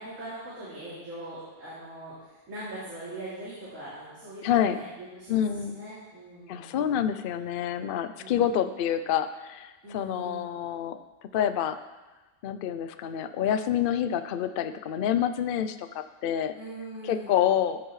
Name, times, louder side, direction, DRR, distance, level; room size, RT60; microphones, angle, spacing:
voice 1, 0.0-6.9 8.1-8.7 9.8-10.5 16.5-17.4, right 1 dB, 90° right, -11 dB, 3.3 m, -42 dB
voice 2, 4.4-4.8 5.3-5.8 6.5-11.0 11.3-11.8 12.4-16.5 17.0-17.8, left 9 dB, 60° left, 10 dB, 0.6 m, -27 dB
13.5 x 9.1 x 3.2 m, 1.2 s
omnidirectional pair, 1.3 m